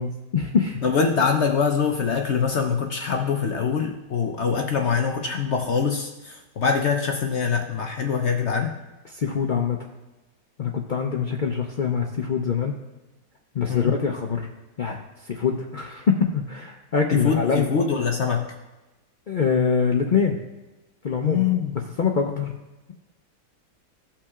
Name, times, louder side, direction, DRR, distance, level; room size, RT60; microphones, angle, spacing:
voice 1, 0.0-0.8 9.1-9.8 10.6-12.8 13.5-14.5 14.8-15.0 15.3-17.7 19.3-20.4 21.0-21.5 22.0-22.4, left 6 dB, 85° left, 1 dB, 0.4 m, -24 dB
voice 2, 0.8-8.7 13.7-14.0 17.1-18.5 21.2-21.7 22.4-22.5, left 6 dB, 55° left, 3 dB, 0.8 m, -24 dB
16.0 x 5.8 x 2.4 m, 1.1 s
omnidirectional pair, 1.8 m